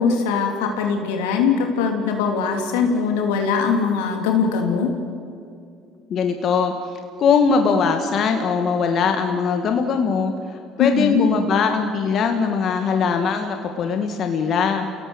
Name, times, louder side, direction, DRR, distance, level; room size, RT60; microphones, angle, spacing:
voice 1, 0.0-4.9 10.8-11.3, left 5 dB, 85° left, 3 dB, 3.0 m, -21 dB
voice 2, 6.1-6.7 7.2-10.3 10.8-14.9, left 5 dB, 55° left, 5 dB, 2.0 m, -20 dB
28.5 x 17.5 x 8.1 m, 2.4 s
hypercardioid pair, 70°, 0 cm